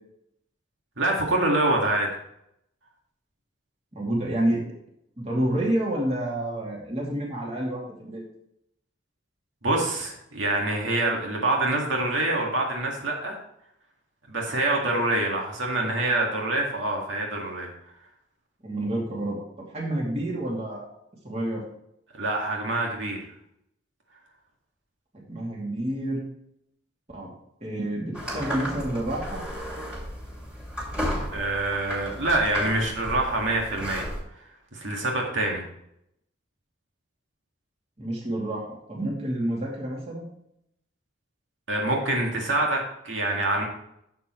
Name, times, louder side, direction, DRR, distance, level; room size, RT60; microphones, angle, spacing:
voice 1, 1.0-2.1 9.6-13.4 14.3-17.7 22.1-23.2 31.3-34.1 34.7-35.6 41.7-43.6, right 2 dB, 80° right, -1 dB, 2.1 m, -25 dB
voice 2, 3.9-4.6 5.2-8.2 18.6-19.4 19.7-20.9 21.2-21.6 25.1-26.2 27.1-27.3 27.6-29.4 38.0-40.3, right 1 dB, 35° right, -2 dB, 2.6 m, -29 dB
sound 1, 28.1-34.2, equal, 5° right, 2.4 m, -34 dB
11.5 x 7.0 x 3.2 m, 0.76 s
head